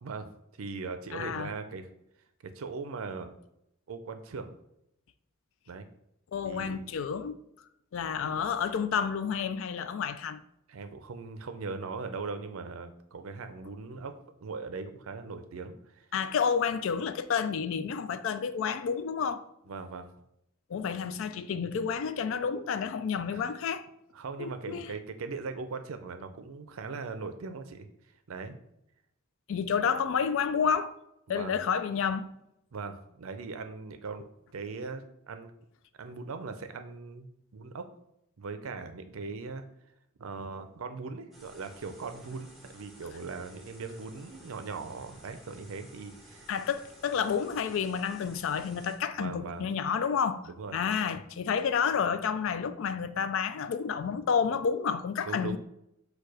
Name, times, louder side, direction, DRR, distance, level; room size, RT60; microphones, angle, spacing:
voice 1, 0.5-1.9 2.4-3.3 3.9-4.5 5.7-5.8 6.4-6.8 10.7-15.9 19.7-20.1 23.3-23.5 24.1-27.9 28.3-28.6 31.3-31.6 32.7-34.2 34.5-35.5 36.0-37.9 38.4-39.6 40.2-46.5 49.2-49.7 50.4-50.8 55.3-55.6, right 4 dB, 75° right, 0.5 m, -39 dB
voice 2, 1.1-1.5 6.3-7.3 7.9-10.4 16.1-19.4 20.7-23.8 24.4-24.9 29.5-30.9 31.3-32.3 46.5-55.6, left 6 dB, 65° left, 0.3 m, -30 dB
sound 1, 41.3-49.0, equal, ahead, 0.9 m, -54 dB
4.5 x 2.3 x 4.7 m
head